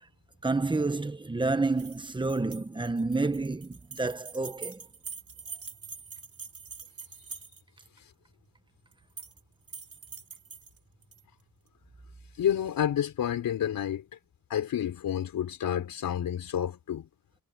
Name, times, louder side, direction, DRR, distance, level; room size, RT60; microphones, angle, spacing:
voice 1, 0.4-4.8, right 3 dB, 15° right, 1.2 m, -29 dB
sound 1, 1.7-7.8 8.9-9.4 9.7-11.2, right 5 dB, 45° right, 5.8 m, -44 dB
voice 2, 12.4-14.0 14.5-17.1, left 10 dB, 80° left, 4.2 m, -29 dB
wide cardioid pair, 145°, 33 cm